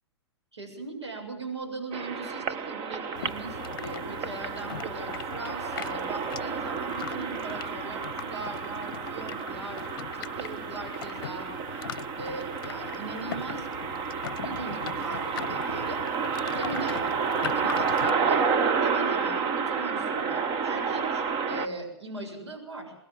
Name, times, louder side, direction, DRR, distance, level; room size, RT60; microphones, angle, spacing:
voice 1, 0.5-9.9 10.2-11.5 12.2-13.7 14.4-16.0 16.5-17.1 17.4-18.5 18.8-22.9, right 2 dB, 80° right, 2 dB, 7.2 m, -39 dB
sound 1, 1.9-21.7, right 5 dB, 30° right, 1.5 m, -30 dB
sound 2, 3.1-18.1, left 10 dB, 50° left, 0.8 m, -41 dB
25.0 x 20.5 x 7.6 m, 0.84 s
figure-of-eight pair, 115°, 14 cm